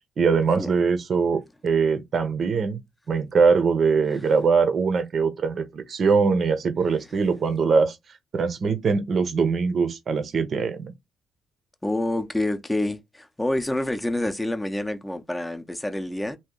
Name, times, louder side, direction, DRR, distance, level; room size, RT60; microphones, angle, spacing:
voice 1, 0.2-2.8 3.1-8.0 8.3-10.9, right 5 dB, 50° right, 0.7 m, -22 dB
voice 2, 11.8-16.4, left 1 dB, 10° left, 0.6 m, -27 dB
2.9 x 2.6 x 3.7 m
cardioid pair, 90°, 0 cm